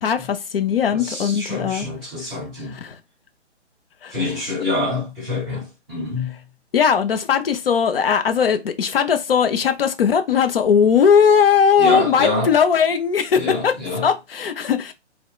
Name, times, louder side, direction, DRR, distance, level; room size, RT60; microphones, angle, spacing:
voice 1, 0.0-1.9 2.8-3.0 4.0-4.2 6.7-13.8 14.0-14.9, left 7 dB, 55° left, 0.5 m, -18 dB
voice 2, 0.9-2.8 4.1-6.4 11.8-12.6 13.3-14.1, left 2 dB, ahead, 0.5 m, -26 dB
2.8 x 2.1 x 2.2 m
figure-of-eight pair, 130°, 36 cm